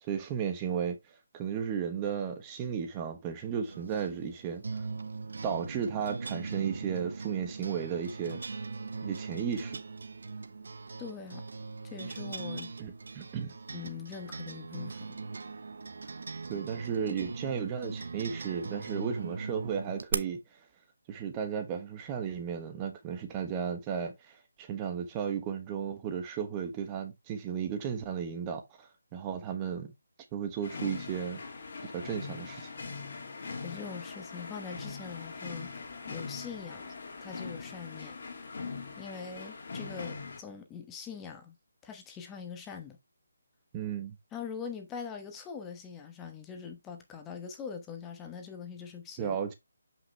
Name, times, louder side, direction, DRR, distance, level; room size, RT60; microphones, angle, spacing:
voice 1, 0.1-1.0 1.3-4.8 5.4-8.4 9.0-9.8 12.8-13.5 16.5-20.4 21.1-29.9 30.3-31.4 31.8-32.7 43.7-44.1 49.2-49.5, right 7 dB, 20° right, 1.1 m, -34 dB
sound 1, 3.7-20.1, right 4 dB, 65° right, 0.9 m, -40 dB
voice 2, 11.0-11.5 11.8-12.7 13.7-15.2 33.3-35.7 36.1-36.8 37.2-38.1 39.0-41.5 41.8-43.0 44.3-49.4, left 6 dB, 15° left, 1.1 m, -42 dB
sound 2, 30.6-40.4, left 4 dB, 50° left, 2.8 m, -41 dB
7.5 x 5.7 x 3.3 m
figure-of-eight pair, 155°, 0 cm